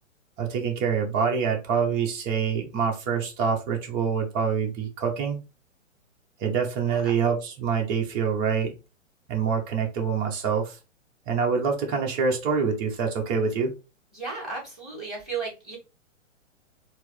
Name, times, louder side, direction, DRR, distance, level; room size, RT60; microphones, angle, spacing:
voice 1, 0.4-5.4 6.4-8.7 9.3-10.7 11.3-13.7, right 6 dB, 25° right, 2 dB, 0.9 m, -26 dB
voice 2, 14.1-15.8, right 4 dB, ahead, -3 dB, 2.1 m, -34 dB
4.4 x 2.1 x 3.2 m, 0.29 s
figure-of-eight pair, 120°, 39 cm